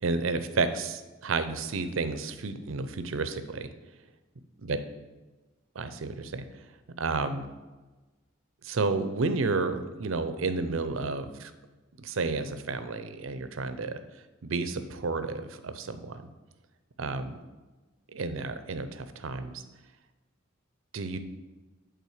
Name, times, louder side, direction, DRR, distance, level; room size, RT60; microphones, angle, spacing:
voice 1, 0.0-3.7 4.6-4.8 5.8-6.4 7.0-7.5 8.6-11.5 12.0-14.0 14.4-16.2 17.0-17.4 18.1-19.6 20.9-21.2, right 3 dB, 70° right, 10 dB, 0.6 m, -31 dB
8.3 x 3.7 x 6.5 m, 1.2 s
head